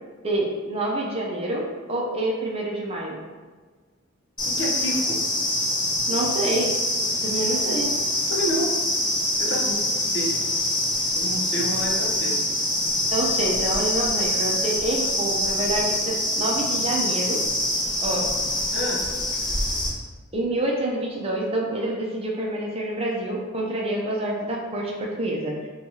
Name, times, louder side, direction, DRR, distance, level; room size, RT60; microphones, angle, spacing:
voice 1, 0.2-3.2 6.1-6.7 7.2-7.9 9.6-9.8 13.1-17.4 18.0-18.3 20.3-25.6, right 1 dB, 30° right, -2 dB, 0.5 m, -27 dB
voice 2, 4.4-5.2 8.3-8.7 9.4-9.8 10.1-10.3 11.1-12.3 18.7-19.0, equal, 60° left, -4 dB, 0.8 m, -29 dB
sound 1, 4.4-19.9, left 1 dB, 20° left, 0.8 m, -25 dB
4.4 x 2.3 x 2.8 m, 1.4 s
head